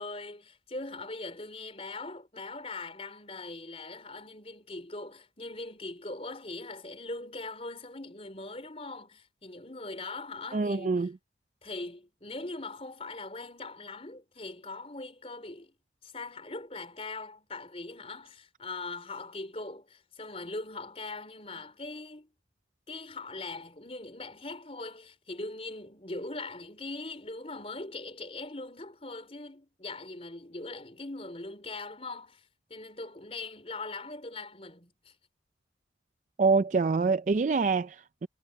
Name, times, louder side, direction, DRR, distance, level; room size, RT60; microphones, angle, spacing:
voice 1, 0.0-11.1 11.6-15.7 16.0-22.3 22.9-32.4 32.7-35.1, left 2 dB, 35° left, 4.5 m, -41 dB
voice 2, 10.5-11.1 36.4-38.3, right 4 dB, 45° right, 0.3 m, -26 dB
head